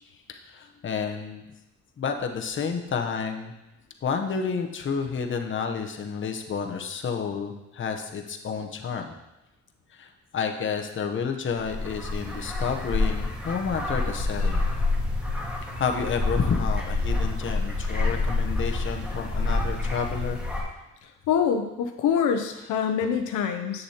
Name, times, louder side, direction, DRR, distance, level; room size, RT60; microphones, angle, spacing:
voice 1, 0.3-1.4 2.0-3.5 4.0-9.1 9.9-14.6 15.8-20.4, left 6 dB, 40° left, 4 dB, 0.8 m, -30 dB
sound 1, 11.5-20.6, left 2 dB, 5° right, 1.6 m, -27 dB
voice 2, 21.0-23.8, left 7 dB, 80° left, 6 dB, 0.6 m, -25 dB
8.0 x 6.7 x 2.9 m, 0.98 s
cardioid pair, 90°, 30 cm